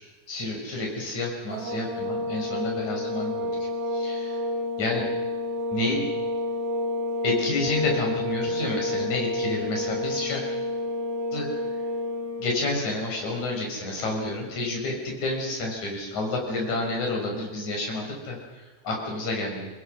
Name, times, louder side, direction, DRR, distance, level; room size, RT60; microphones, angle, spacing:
voice 1, 0.3-4.4 4.8-5.1 5.7-6.1 7.2-10.4 11.3-11.5 12.4-19.7, left 2 dB, 45° left, 0 dB, 6.6 m, -29 dB
sound 1, 1.5-12.5, left 2 dB, 50° right, 4.8 m, -30 dB
24.5 x 21.0 x 6.4 m, 1.3 s
omnidirectional pair, 4.7 m